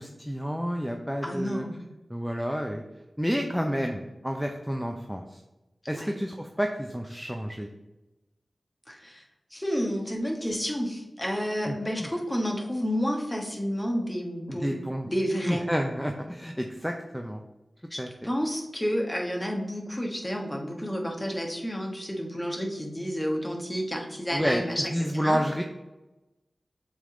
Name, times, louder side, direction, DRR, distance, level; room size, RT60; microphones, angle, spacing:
voice 1, 0.0-1.6 2.1-2.8 3.2-5.4 5.9-7.7 11.7-12.1 14.5-15.1 15.5-17.4 18.0-18.1 24.3-25.6, equal, ahead, 2 dB, 0.5 m, -30 dB
voice 2, 1.2-1.8 5.9-6.1 8.9-9.2 9.5-14.7 15.1-15.6 17.9-25.4, equal, 15° left, 0 dB, 1.3 m, -30 dB
7.2 x 3.6 x 3.7 m, 1.0 s
cardioid pair, 45°, 0 cm